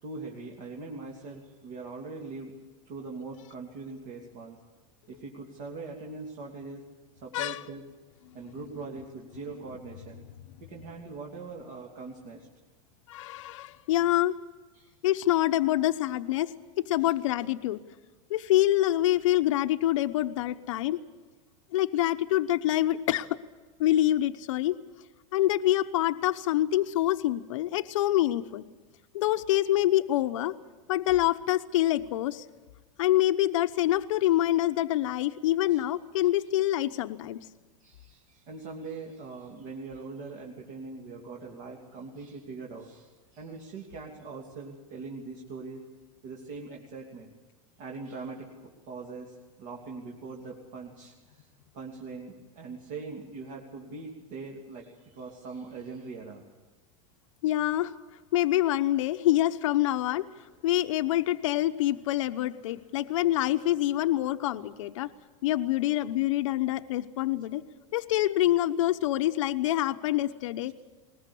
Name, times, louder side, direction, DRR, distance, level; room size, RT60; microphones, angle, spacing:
voice 1, 0.0-2.5 2.9-4.6 5.1-6.8 7.1-7.8 8.3-10.2 10.6-12.5 14.7-14.9 17.0-17.1 35.7-35.8 37.8-45.8 46.2-47.3 47.8-51.5 51.7-56.4, right 4 dB, 45° right, -1 dB, 3.0 m, -42 dB
voice 2, 13.1-14.3 15.0-17.8 18.3-21.0 21.7-23.3 23.8-24.7 25.3-28.6 29.1-30.5 30.9-32.4 33.0-37.4 57.4-57.9 58.3-60.3 60.6-65.1 65.4-67.6 67.9-70.7, left 14 dB, 70° left, 7 dB, 1.0 m, -26 dB
21.0 x 20.5 x 8.5 m, 1.2 s
supercardioid pair, 175°, 17 cm